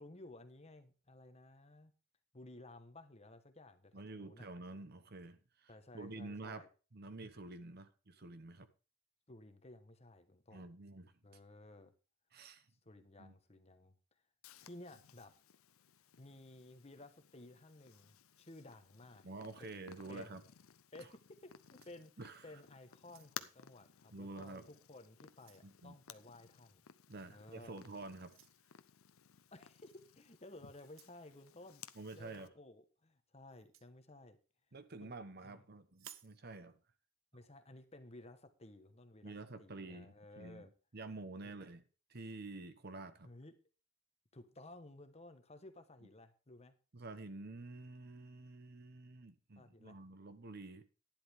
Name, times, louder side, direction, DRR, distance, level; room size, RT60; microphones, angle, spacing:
voice 1, 0.0-1.9 2.3-4.5 5.7-6.7 9.3-10.6 11.2-11.9 12.8-14.0 14.6-15.3 16.2-19.2 19.6-20.4 20.9-22.1 22.4-26.9 27.3-27.8 29.5-34.4 35.0-35.1 35.4-35.6 37.3-40.7 41.4-41.5 43.2-43.5 44.3-46.7 49.6-50.0, left 2 dB, 30° left, 1.2 m, -56 dB
voice 2, 3.9-6.6 6.9-8.7 10.5-11.1 12.3-12.7 13.2-13.3 19.2-20.4 22.2-22.4 24.1-24.6 25.6-26.0 27.1-28.3 31.9-32.5 34.7-36.7 39.2-40.7 40.9-41.8 42.1-43.3 46.9-50.8, right 2 dB, 50° right, 1.0 m, -49 dB
Purr, 14.4-32.5, left 9 dB, 85° left, 0.7 m, -57 dB
sound 1, 21.4-22.5 23.0-23.6 24.4-24.6 25.0-25.7 27.1-27.3 28.2-28.6 29.9-30.1 30.8-31.2 33.5-33.9 35.9-36.4, right 11 dB, 70° right, 0.8 m, -60 dB
11.5 x 10.5 x 3.6 m
head